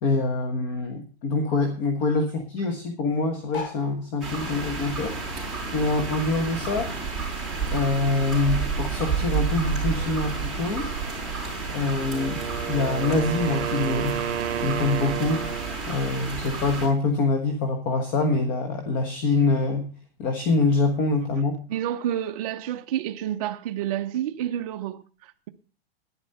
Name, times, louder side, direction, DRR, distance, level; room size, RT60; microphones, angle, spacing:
voice 1, 0.0-5.1 5.7-7.3 7.7-10.9 11.7-14.2 14.6-15.5 15.9-19.9 20.2-21.6, left 3 dB, 25° left, 1.3 m, -25 dB
sound 1, 3.5-6.2 6.6-8.1 8.6-8.7 8.8-8.9 9.1-9.5 10.3-10.4, left 6 dB, 55° left, 6.6 m, -42 dB
sound 2, 4.2-16.9, right 4 dB, ahead, 4.5 m, -30 dB
Wind instrument woodwind instrument, 12.0-15.9, right 11 dB, 85° right, 0.7 m, -31 dB
voice 2, 21.7-25.5, right 11 dB, 35° right, 0.5 m, -29 dB
11.5 x 10.0 x 5.5 m
supercardioid pair, 165°, 32 cm